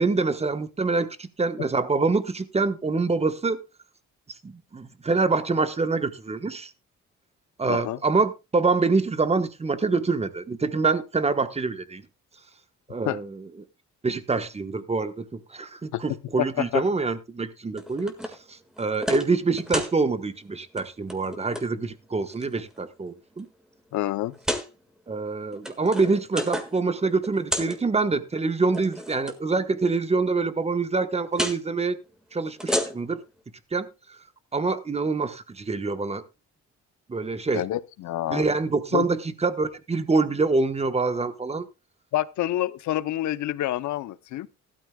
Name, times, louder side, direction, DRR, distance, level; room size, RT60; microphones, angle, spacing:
voice 1, 0.0-3.6 4.4-6.7 7.6-12.0 12.9-13.5 14.0-18.1 18.5-23.5 25.1-32.0 32.3-33.2 33.7-33.9 34.5-36.2 37.1-37.6 38.3-41.6, right 3 dB, 20° right, 1.1 m, -25 dB
voice 2, 7.7-8.0 13.0-13.2 15.9-16.0 16.4-16.8 23.9-24.3 37.5-38.4 38.9-39.1 42.1-44.5, left 14 dB, 75° left, 0.7 m, -27 dB
sound 1, 17.8-18.4 18.8-19.3 19.6-20.0 20.6-20.8 21.1-21.7 22.3-22.8 23.4-23.5 24.3-24.7 25.4-26.8 27.1-27.8 28.6-29.3 31.3-31.6 32.5-33.2, equal, ahead, 1.7 m, -31 dB
15.0 x 12.5 x 2.3 m
cardioid pair, 90°, 30 cm